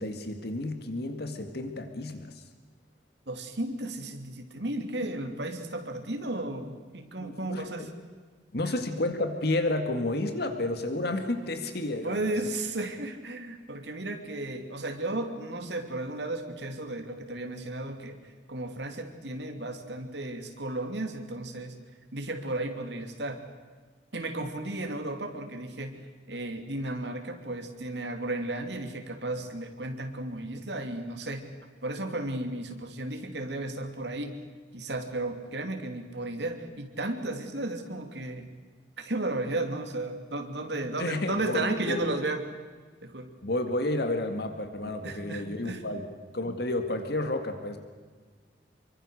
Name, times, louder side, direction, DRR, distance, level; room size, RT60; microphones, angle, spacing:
voice 1, 0.0-2.4 7.2-7.9 8.5-12.3 41.0-42.0 43.4-46.1 46.3-47.8, left 2 dB, 60° left, 7 dB, 2.1 m, -31 dB
voice 2, 3.3-7.9 12.0-21.7 22.1-23.4 24.1-26.0 26.3-31.5 31.8-34.4 34.7-38.5 39.0-42.4 43.0-43.3 45.0-45.8, right 2 dB, 70° right, 5 dB, 3.1 m, -34 dB
27.0 x 24.0 x 6.6 m, 1.5 s
head